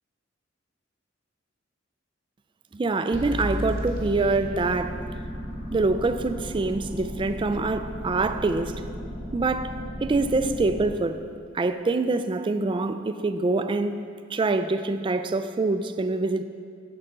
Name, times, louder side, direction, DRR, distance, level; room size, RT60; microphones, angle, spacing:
voice 1, 2.7-5.0 5.7-8.8 9.3-11.2 11.5-14.1 14.3-16.4, right 3 dB, 25° right, 0.3 m, -25 dB
sound 1, 3.1-10.9, equal, 45° left, 1.8 m, -34 dB
14.5 x 5.6 x 3.8 m
head